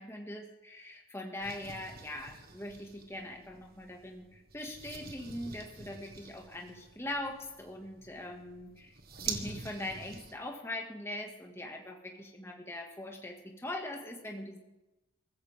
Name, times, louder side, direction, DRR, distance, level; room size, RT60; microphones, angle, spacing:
voice 1, 0.0-14.6, left 1 dB, 10° left, 1 dB, 2.0 m, -41 dB
sound 1, 1.4-10.3, right 5 dB, 45° right, 1.6 m, -46 dB
22.5 x 14.5 x 3.7 m, 1.0 s
head